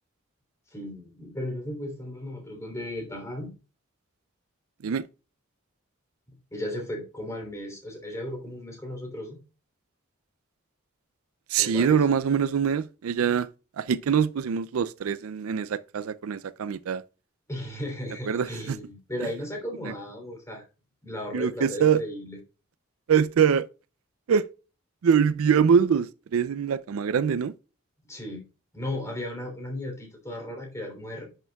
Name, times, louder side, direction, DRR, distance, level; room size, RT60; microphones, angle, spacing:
voice 1, 0.7-3.5 6.5-9.4 11.6-12.0 17.5-20.6 21.0-22.4 28.1-28.4 28.7-31.4, left 1 dB, 15° left, 3.2 m, -35 dB
voice 2, 11.5-13.5 13.8-17.0 18.3-18.8 19.8-19.9 21.3-22.0 23.1-23.7 24.3-24.4 25.0-27.5, right 7 dB, 85° right, 0.4 m, -24 dB
10.0 x 6.7 x 2.3 m
head